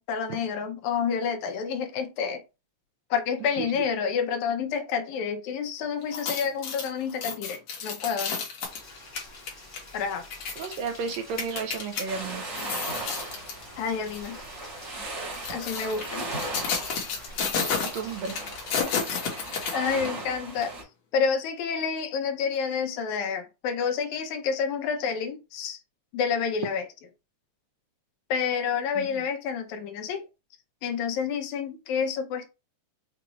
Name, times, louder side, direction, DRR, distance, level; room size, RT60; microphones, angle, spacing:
voice 1, 0.0-2.4 3.1-8.4 9.9-10.2 13.1-13.2 13.8-14.4 15.5-16.3 16.7-16.8 19.1-19.2 19.7-20.7 21.1-25.8 26.1-26.9 28.3-30.3 30.8-32.5, left 6 dB, 80° left, 2.0 m, -29 dB
sound 1, 6.0-12.0 12.5-13.6 14.1-14.3 15.1-20.2 20.6-20.7, left 6 dB, 65° left, 1.9 m, -32 dB
Rain, 8.6-18.8, left 1 dB, 15° left, 1.1 m, -48 dB
voice 2, 10.6-12.4 15.4-15.6 17.6-18.4 29.0-29.2, right 5 dB, 75° right, 1.8 m, -33 dB
sound 2, 12.1-20.8, right 2 dB, 35° right, 1.2 m, -37 dB
5.9 x 2.4 x 3.0 m
omnidirectional pair, 3.4 m